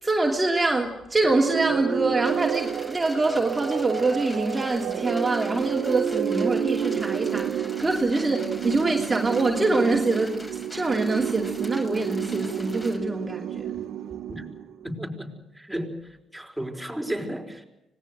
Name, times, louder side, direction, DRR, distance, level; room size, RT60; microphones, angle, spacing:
voice 1, 0.0-13.8, right 2 dB, 20° right, 2.7 m, -25 dB
sound 1, 1.2-15.0, right 9 dB, 75° right, 1.3 m, -30 dB
sound 2, 2.2-13.0, left 1 dB, 15° left, 5.5 m, -45 dB
voice 2, 14.8-15.9 16.3-17.6, equal, ahead, 5.0 m, -33 dB
25.5 x 19.0 x 8.0 m
cardioid pair, 90°, 0 cm